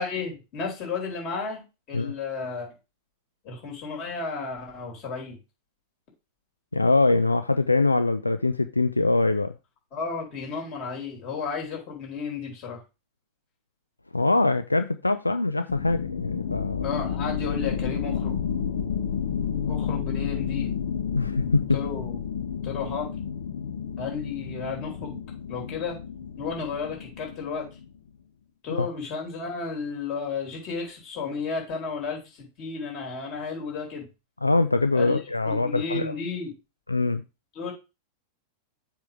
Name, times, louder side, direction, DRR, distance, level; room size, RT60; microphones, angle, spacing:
voice 1, 0.0-2.7 3.4-5.4 9.9-12.8 16.8-18.3 19.7-20.7 21.7-22.2 22.6-23.1 24.0-25.2 25.5-26.0 26.4-27.8 28.6-34.1 34.9-35.2 35.4-36.5 37.5-37.7, left 5 dB, 40° left, 4.4 m, -33 dB
voice 2, 6.7-9.5 14.1-16.9 21.1-21.7 28.8-28.9 34.4-36.1 36.9-37.2, left 3 dB, 85° left, 0.4 m, -23 dB
sound 1, 15.7-28.0, left 7 dB, 65° left, 1.1 m, -31 dB
7.4 x 3.6 x 6.2 m
figure-of-eight pair, 90°, 0 cm